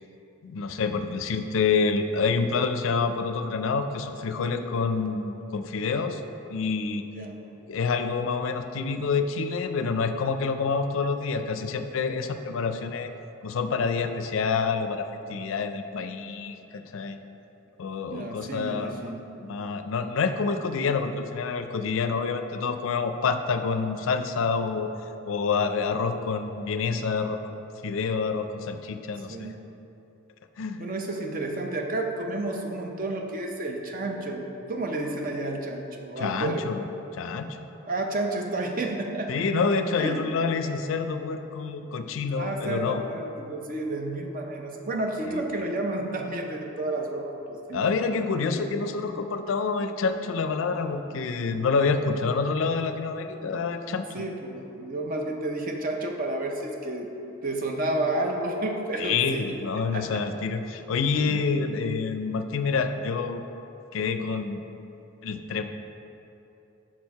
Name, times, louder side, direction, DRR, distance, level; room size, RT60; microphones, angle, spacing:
voice 1, 0.4-6.2 6.5-7.1 7.7-13.1 13.4-17.2 17.8-19.0 19.4-24.9 25.2-27.5 27.8-29.5 30.6-30.8 36.2-36.9 37.2-37.6 39.3-43.0 45.3-45.4 47.7-54.2 59.0-63.4 63.9-64.6 65.2-65.6, left 4 dB, 70° left, 8 dB, 0.4 m, -27 dB
voice 2, 18.1-19.2 29.3-29.6 30.8-36.6 37.8-39.3 40.0-40.3 42.4-47.9 48.5-48.6 53.9-57.1 57.4-59.5 59.9-60.2 61.2-61.4, right 2 dB, 45° right, 2 dB, 0.6 m, -31 dB
5.9 x 4.4 x 4.7 m, 2.9 s
head